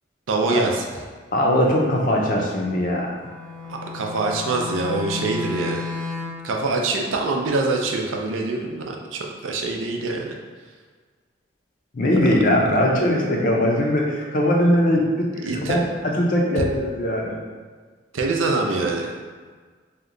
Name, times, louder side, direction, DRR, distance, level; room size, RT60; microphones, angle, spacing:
voice 1, 0.3-0.8 3.7-5.9 6.4-10.3 15.4-15.8 16.6-16.7 18.1-19.2, right 3 dB, 90° right, 1 dB, 0.5 m, -24 dB
voice 2, 1.3-3.2 11.9-17.4, left 1 dB, 45° left, -1 dB, 0.5 m, -20 dB
Bowed string instrument, 3.1-6.5, left 4 dB, 5° left, 0.7 m, -33 dB
2.8 x 2.2 x 3.7 m, 1.5 s
head